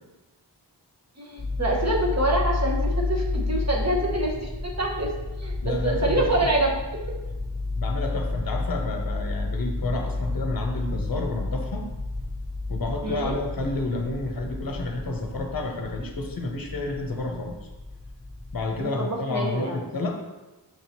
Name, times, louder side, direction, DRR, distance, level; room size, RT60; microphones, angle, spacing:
voice 1, 1.2-5.1 5.4-6.8 13.0-13.4 18.8-19.8, right 1 dB, 35° right, -2 dB, 0.9 m, -26 dB
sound 1, 1.4-18.8, left 2 dB, 5° left, 0.4 m, -31 dB
voice 2, 5.6-6.4 7.8-11.8 12.7-17.7 18.5-20.2, left 2 dB, 50° left, 3 dB, 0.8 m, -30 dB
5.9 x 2.9 x 2.9 m, 1.1 s
wide cardioid pair, 40°, 44 cm